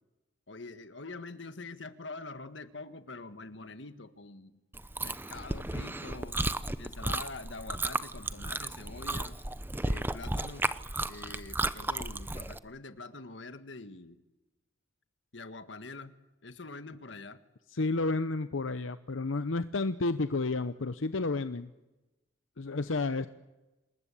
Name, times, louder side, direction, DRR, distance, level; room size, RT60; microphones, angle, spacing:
voice 1, 0.5-4.6 5.0-6.4 6.8-9.4 9.8-10.7 11.1-14.2 15.3-16.1 16.4-17.4, left 3 dB, 65° left, 11 dB, 1.7 m, -45 dB
Chewing mastication, 4.7-12.6, right 2 dB, 10° right, 0.8 m, -34 dB
voice 2, 17.7-21.7 22.6-23.3, left 3 dB, 85° left, 12 dB, 0.9 m, -31 dB
27.5 x 20.5 x 8.5 m, 1.0 s
head